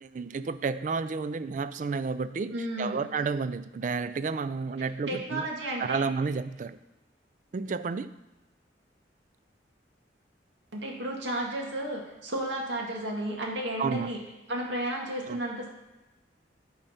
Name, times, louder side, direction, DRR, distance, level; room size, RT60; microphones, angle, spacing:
voice 1, 0.0-5.5 5.8-6.8 7.5-8.1 13.8-14.1 15.3-15.4, right 4 dB, 45° right, 14 dB, 0.3 m, -31 dB
voice 2, 2.5-3.0 5.1-6.0 10.7-14.2 14.5-15.7, right 1 dB, 80° right, -1 dB, 1.9 m, -33 dB
9.8 x 4.0 x 5.7 m, 1.1 s
head